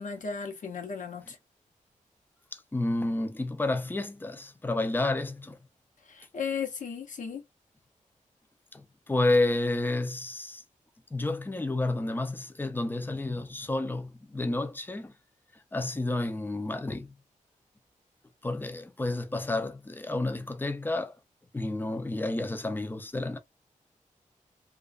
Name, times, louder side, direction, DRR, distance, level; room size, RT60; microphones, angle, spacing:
voice 1, 0.0-1.4 6.1-7.4, left 6 dB, 70° left, 0.7 m, -35 dB
voice 2, 2.5-5.6 8.7-10.6 11.1-15.1 15.7-17.1 18.4-21.2 21.5-23.4, left 2 dB, 15° left, 0.4 m, -30 dB
2.5 x 2.2 x 2.3 m
cardioid pair, 65°, 14 cm